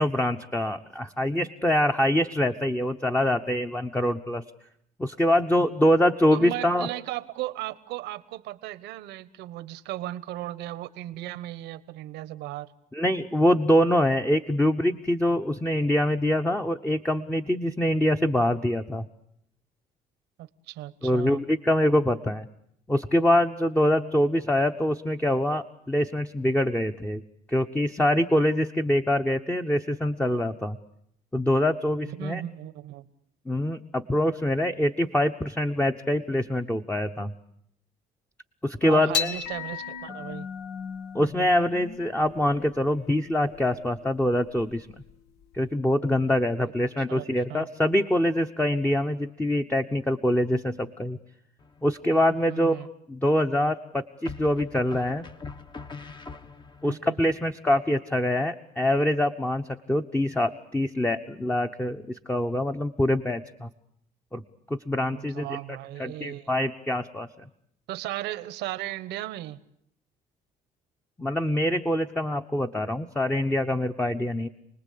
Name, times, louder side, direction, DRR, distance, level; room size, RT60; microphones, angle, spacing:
voice 1, 0.0-4.4 5.0-6.9 12.9-19.0 21.0-22.5 22.9-27.2 27.5-30.8 31.3-32.4 33.5-37.3 38.6-39.3 41.1-44.9 45.5-51.2 51.8-52.8 53.1-55.3 56.8-63.7 64.3-64.4 64.7-65.6 66.0-67.3 71.2-74.5, left 1 dB, 10° left, 5 dB, 1.0 m, -24 dB
voice 2, 6.3-12.7 20.4-21.4 32.0-33.1 38.8-40.5 47.1-47.7 52.5-52.9 56.8-57.3 65.1-66.6 67.9-69.6, right 15 dB, 90° right, 15 dB, 1.2 m, -36 dB
sound 1, 39.1-45.7, left 7 dB, 75° left, 1.5 m, -36 dB
sound 2, 51.6-52.2 54.2-56.9, left 4 dB, 25° left, 1.2 m, -42 dB
29.0 x 20.0 x 8.6 m, 0.74 s
cardioid pair, 110°, 17 cm